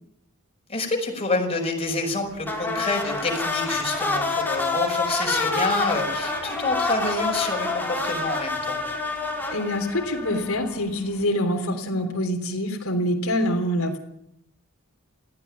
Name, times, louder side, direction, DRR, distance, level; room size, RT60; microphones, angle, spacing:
voice 1, 0.7-8.8, left 3 dB, 30° left, 2 dB, 5.6 m, -27 dB
sound 1, 2.4-10.9, left 3 dB, 10° left, 4.4 m, -27 dB
voice 2, 9.5-14.0, left 1 dB, 90° left, 4 dB, 3.4 m, -25 dB
20.0 x 15.5 x 9.7 m, 0.74 s
head